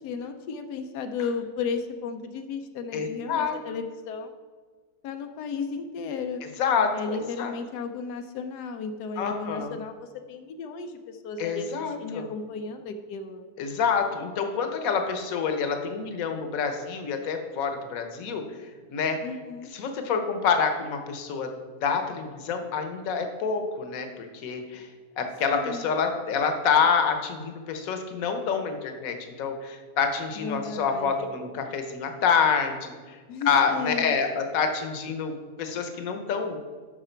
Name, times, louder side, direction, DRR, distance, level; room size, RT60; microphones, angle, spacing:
voice 1, 0.0-4.3 5.0-6.4 6.9-13.4 19.2-19.7 25.5-25.9 30.4-31.3 33.3-34.1, left 5 dB, 90° left, 6 dB, 1.2 m, -34 dB
voice 2, 2.9-3.6 6.6-7.5 9.2-9.8 11.4-12.3 13.6-18.4 18.9-19.2 19.7-21.5 21.8-24.9 25.2-33.2 33.5-36.6, left 6 dB, 65° left, 6 dB, 1.2 m, -27 dB
11.5 x 4.7 x 4.4 m, 1.5 s
omnidirectional pair, 1.7 m